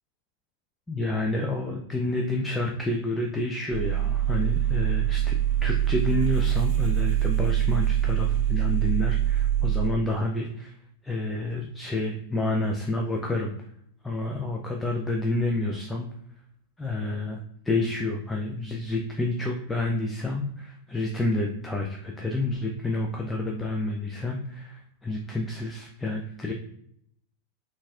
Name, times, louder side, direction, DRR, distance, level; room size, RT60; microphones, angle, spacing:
voice 1, 0.9-10.8 11.0-13.5 14.0-16.1 16.8-26.5, left 2 dB, 10° left, 0 dB, 0.4 m, -29 dB
sound 1, 3.7-9.9, right 11 dB, 45° right, 0.5 m, -24 dB
3.9 x 2.3 x 2.3 m, 0.70 s
figure-of-eight pair, 90°, 0 cm